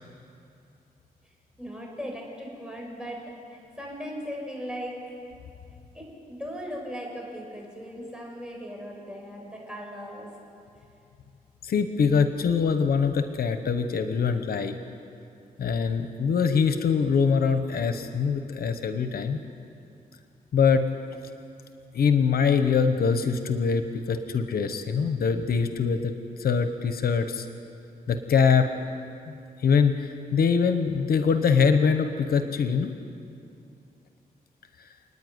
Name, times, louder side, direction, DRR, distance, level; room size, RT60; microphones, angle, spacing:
voice 1, 1.6-5.0 5.9-10.3, equal, 5° right, -1 dB, 5.8 m, -38 dB
voice 2, 11.6-14.7 15.6-19.4 20.5-20.9 21.9-26.1 26.4-27.5 28.1-28.7 29.3-29.4 29.6-32.9 34.8-34.9, left 6 dB, 80° left, 8 dB, 1.0 m, -23 dB
29.0 x 9.7 x 9.6 m, 2.6 s
cardioid pair, 80°, 15 cm